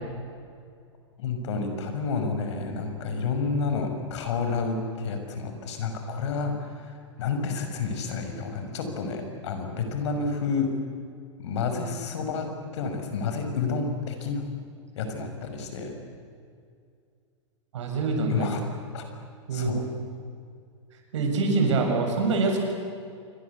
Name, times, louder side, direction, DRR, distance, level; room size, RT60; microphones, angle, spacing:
voice 1, 1.2-10.7 11.4-14.4 15.0-16.0 18.3-18.6 18.9-19.1 19.5-19.8, left 4 dB, 65° left, 6 dB, 6.0 m, -30 dB
voice 2, 17.7-18.5 19.5-19.8 21.1-22.7, right 3 dB, 70° right, 3 dB, 7.3 m, -25 dB
28.0 x 23.0 x 8.4 m, 2.3 s
hypercardioid pair, 115°, 16 cm